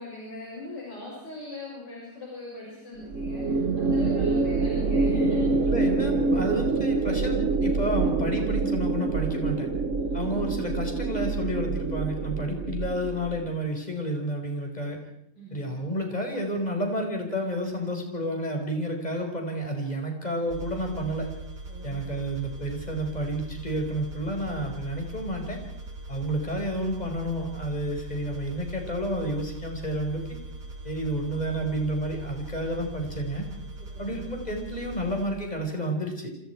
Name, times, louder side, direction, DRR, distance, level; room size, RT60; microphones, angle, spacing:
voice 1, 0.0-5.7 9.9-10.2 15.3-15.7 21.7-22.2 33.8-34.2, left 2 dB, 85° left, -5 dB, 7.5 m, -40 dB
sound 1, 3.1-13.5, right 4 dB, 50° right, 1.4 m, -26 dB
voice 2, 5.7-9.7 10.1-15.0 15.5-21.3 21.8-25.6 26.1-30.4 30.8-33.5 34.0-36.3, equal, 25° left, 2 dB, 5.2 m, -30 dB
sound 2, 20.5-35.3, right 2 dB, 75° right, 4.5 m, -40 dB
29.0 x 26.5 x 4.7 m, 0.77 s
omnidirectional pair, 1.8 m